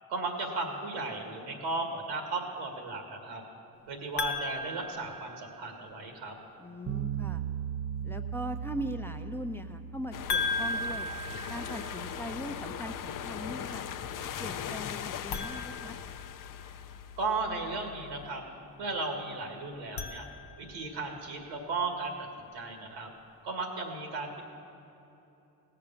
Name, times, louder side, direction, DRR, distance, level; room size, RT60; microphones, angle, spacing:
voice 1, 0.1-3.4 3.9-6.4 17.2-18.4 18.8-20.3 20.6-22.1 22.5-23.1 23.4-24.4, right 3 dB, 90° right, 3 dB, 2.0 m, -35 dB
sound 1, 4.2-5.9 10.3-12.3 15.2-16.8 19.7-20.9, left 3 dB, 75° left, 1.0 m, -36 dB
voice 2, 6.6-7.4 8.0-11.1 11.5-13.8 14.4-16.0, equal, 5° left, 5 dB, 0.7 m, -40 dB
sound 2, 6.9-17.8, right 8 dB, 40° right, 0.6 m, -41 dB
sound 3, 10.1-18.3, left 9 dB, 50° left, 0.6 m, -40 dB
17.0 x 6.8 x 7.1 m, 2.9 s
supercardioid pair, 65°, 41 cm